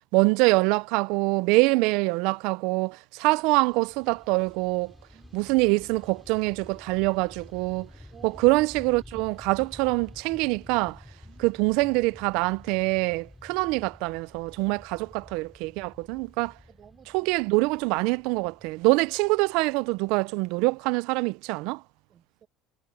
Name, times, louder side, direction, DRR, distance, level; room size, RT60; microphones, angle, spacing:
voice 1, 0.1-4.9 5.3-7.9 8.2-11.0 11.4-16.5 17.1-21.8, right 24 dB, 70° right, 0.4 m, -24 dB
Fixed-wing aircraft airplane, 3.4-20.9, left 1 dB, 5° left, 5.3 m, -50 dB
voice 2, 5.1-5.6 8.1-8.5 11.2-11.6 16.3-17.3 22.1-22.5, right 9 dB, 30° right, 6.7 m, -55 dB
cardioid pair, 155°, 0 cm